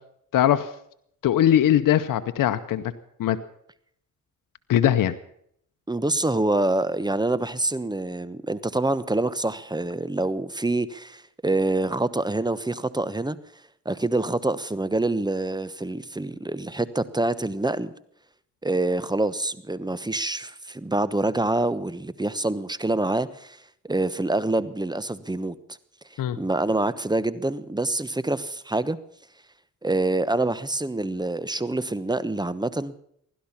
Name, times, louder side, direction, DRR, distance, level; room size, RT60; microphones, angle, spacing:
voice 1, 0.3-0.7 1.2-2.8 3.2-3.4 4.7-5.1 26.2-26.4, left 11 dB, 90° left, 0.7 m, -20 dB
voice 2, 5.9-13.4 13.8-17.9 18.6-23.6 23.8-25.5 26.4-29.0 29.8-33.0, right 2 dB, 15° right, 1.0 m, -26 dB
16.0 x 11.5 x 7.3 m
cardioid pair, 60°, 32 cm